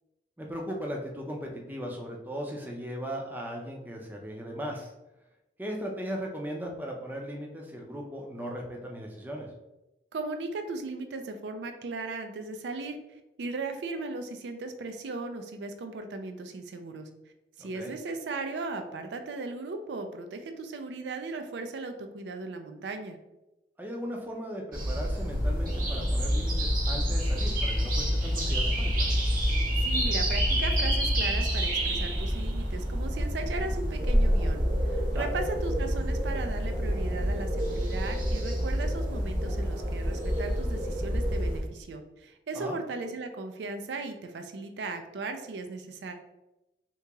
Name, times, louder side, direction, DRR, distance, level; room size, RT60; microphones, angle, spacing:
voice 1, 0.4-4.9 5.6-9.5 17.6-17.9 23.8-29.1 35.1-35.3 42.5-42.8, equal, 10° right, 0 dB, 0.5 m, -37 dB
voice 2, 10.1-13.0 13.4-17.1 17.6-23.2 29.8-46.1, right 3 dB, 80° right, 6 dB, 0.4 m, -37 dB
sound 1, 24.7-41.6, equal, 50° right, 0.9 m, -28 dB
sound 2, 25.3-31.5, left 1 dB, 30° left, 0.8 m, -30 dB
2.9 x 2.8 x 3.4 m, 0.96 s
head